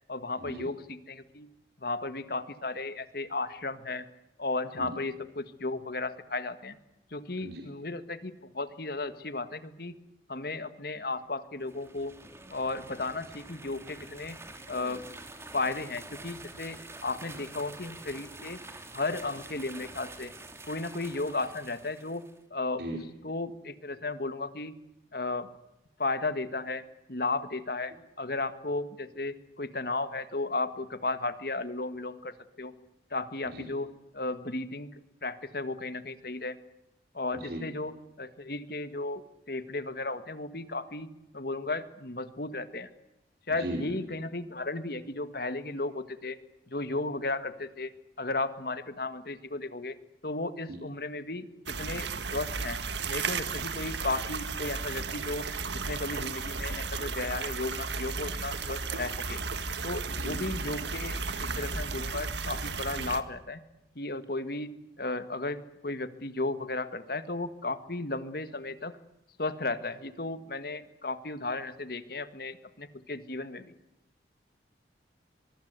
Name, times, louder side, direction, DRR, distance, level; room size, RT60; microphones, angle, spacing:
voice 1, 0.1-1.5 1.8-4.1 4.4-6.8 7.1-9.9 10.3-12.1 12.5-14.4 14.7-15.0 15.5-18.6 18.9-20.3 20.7-22.2 22.5-22.8 23.2-24.7 25.1-25.5 26.0-26.8 27.1-32.7 33.1-36.6 37.1-41.1 41.3-42.9 43.5-46.4 46.7-47.9 48.2-50.0 50.2-52.8 53.1-55.4 55.7-59.4 59.8-63.6 64.0-64.7 65.0-68.9 69.4-73.7, left 2 dB, 55° left, 11 dB, 1.7 m, -34 dB
sound 1, 11.6-22.4, right 2 dB, 15° right, 2.8 m, -47 dB
voice 2, 43.5-44.0 50.7-50.8 60.1-60.4, right 1 dB, 60° right, 1 dB, 4.6 m, -37 dB
sound 2, 51.7-63.2, right 4 dB, 80° right, 1.8 m, -34 dB
23.5 x 23.5 x 8.2 m, 0.94 s
head